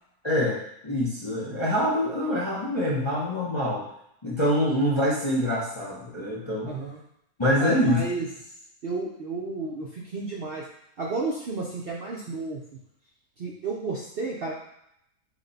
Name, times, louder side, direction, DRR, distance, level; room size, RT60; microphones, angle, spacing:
voice 1, 0.2-0.6 0.8-3.9 4.2-6.7 7.4-8.0, equal, 30° left, -6 dB, 0.5 m, -25 dB
voice 2, 4.6-5.0 6.6-7.0 7.6-8.3 8.8-10.6 11.0-12.6 13.4-14.5, right 3 dB, 60° right, -4 dB, 0.6 m, -32 dB
5.8 x 2.2 x 4.0 m, 0.78 s
omnidirectional pair, 1.7 m